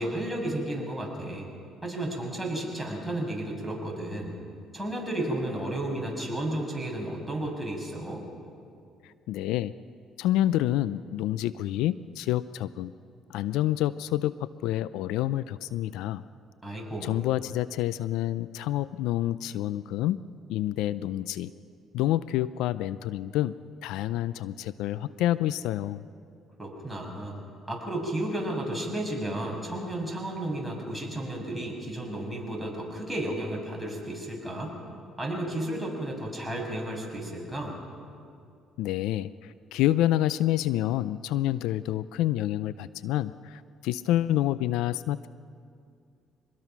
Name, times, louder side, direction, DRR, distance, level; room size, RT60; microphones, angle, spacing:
voice 1, 0.0-1.5 1.8-4.4 4.7-8.2 16.6-17.1 26.6-27.3 27.7-34.7 35.2-37.8, right 1 dB, ahead, -1 dB, 6.8 m, -33 dB
voice 2, 9.0-9.7 10.2-12.9 13.3-16.2 17.0-20.2 20.5-21.5 21.9-23.6 23.8-26.1 38.8-45.3, left 13 dB, 80° left, 16 dB, 0.4 m, -28 dB
24.5 x 20.5 x 6.0 m, 2.4 s
supercardioid pair, 75°, 0 cm